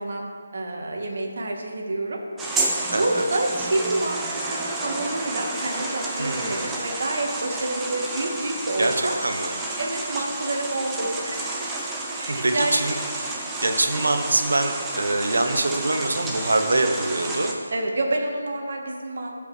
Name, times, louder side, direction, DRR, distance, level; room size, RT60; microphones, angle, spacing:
voice 1, 0.0-2.3 2.9-9.2 9.8-11.8 12.1-12.8 15.4-15.7 17.7-19.3, right 2 dB, 65° right, 1 dB, 1.5 m, -28 dB
sound 1, 2.4-17.5, right 2 dB, 10° right, 0.7 m, -31 dB
voice 2, 2.9-3.2 6.2-6.7 8.8-9.5 12.3-17.5, right 2 dB, 80° right, 5 dB, 0.9 m, -24 dB
14.0 x 5.2 x 3.3 m, 2.1 s
figure-of-eight pair, 160°, 0 cm